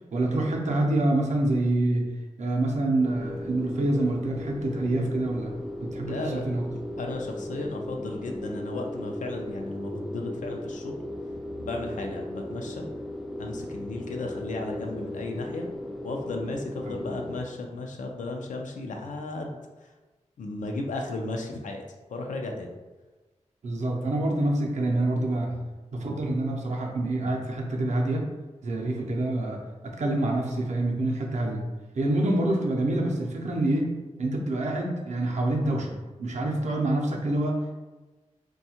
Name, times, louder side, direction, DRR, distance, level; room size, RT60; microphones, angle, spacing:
voice 1, 0.1-2.1 2.4-6.7 16.8-16.9 23.6-25.6 25.9-28.3 28.6-31.7 31.9-35.9 36.2-37.7, right 1 dB, 70° right, 0 dB, 0.5 m, -26 dB
sound 1, 3.0-17.4, left 1 dB, ahead, 0.3 m, -37 dB
voice 2, 6.0-6.5 7.0-11.0 11.6-12.9 13.4-15.7 16.0-19.6 20.4-21.8 22.1-22.7, left 2 dB, 85° left, 2 dB, 0.4 m, -34 dB
2.7 x 2.3 x 2.8 m, 1.2 s
wide cardioid pair, 90°, 13 cm